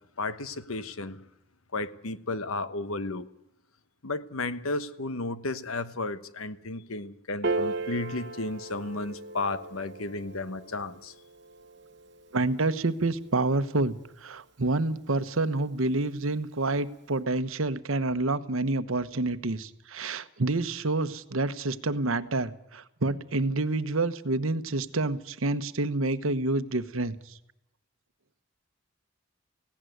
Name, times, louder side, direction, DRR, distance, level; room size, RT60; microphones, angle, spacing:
voice 1, 0.2-1.2 1.7-3.3 4.0-11.1, left 2 dB, 85° left, 1.1 m, -33 dB
Piano, 7.4-14.1, right 3 dB, 55° right, 1.1 m, -37 dB
voice 2, 12.3-27.3, right 2 dB, 80° right, 1.1 m, -28 dB
18.0 x 17.0 x 9.3 m
head